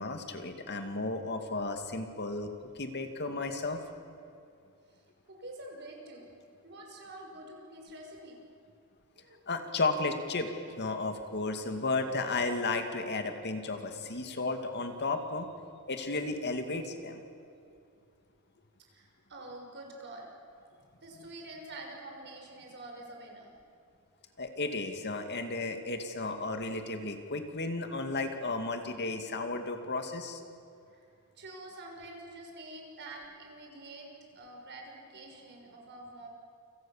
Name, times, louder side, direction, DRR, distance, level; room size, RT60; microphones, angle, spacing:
voice 1, 0.0-2.5 2.8-3.8 9.5-10.5 10.8-15.5 15.9-17.2 24.4-30.4, left 3 dB, 50° left, 6 dB, 2.4 m, -33 dB
voice 2, 4.9-6.4 6.6-8.4 9.1-9.4 18.9-20.3 21.0-23.5 30.9-31.1 31.4-34.1 34.3-36.3, right 2 dB, 55° right, 1 dB, 6.3 m, -47 dB
29.0 x 27.0 x 7.4 m, 2.5 s
head